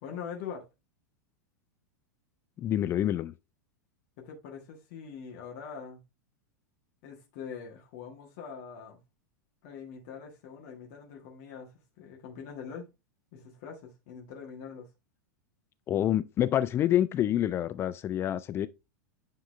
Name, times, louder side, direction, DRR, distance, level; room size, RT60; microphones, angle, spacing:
voice 1, 0.0-0.7 4.2-6.0 7.0-9.0 9.6-12.9 13.3-14.9, left 6 dB, 45° left, 1.5 m, -43 dB
voice 2, 2.6-3.3 15.9-18.7, left 11 dB, 25° left, 0.3 m, -27 dB
8.7 x 3.7 x 3.2 m
figure-of-eight pair, 90°, 10 cm